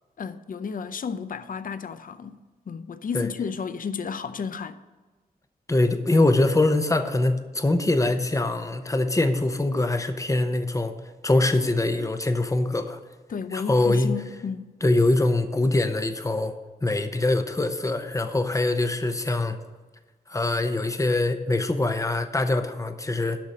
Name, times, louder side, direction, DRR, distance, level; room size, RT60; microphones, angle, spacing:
voice 1, 0.2-4.8 13.3-14.7, left 6 dB, 60° left, 0.5 m, -33 dB
voice 2, 5.7-10.9 11.2-13.0 13.5-14.1 14.8-16.5 16.8-19.6 20.3-23.4, left 2 dB, 20° left, 0.8 m, -23 dB
12.0 x 4.1 x 7.3 m
wide cardioid pair, 70°, 16 cm